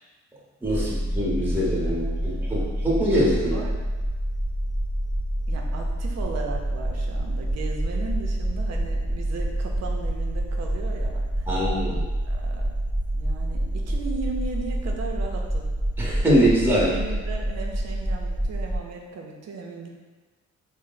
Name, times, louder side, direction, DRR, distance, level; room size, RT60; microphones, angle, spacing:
sound 1, 0.6-18.8, right 1 dB, 15° left, 0.5 m, -27 dB
voice 1, 0.6-3.6 11.5-12.0 16.0-16.9, equal, 5° right, -6 dB, 0.9 m, -23 dB
voice 2, 1.8-2.6 3.5-3.9 5.5-11.5 12.2-12.7 13.1-15.7 16.6-19.9, right 4 dB, 60° right, 1 dB, 0.6 m, -37 dB
3.1 x 2.1 x 3.9 m, 1.3 s
cardioid pair, 90°, 30 cm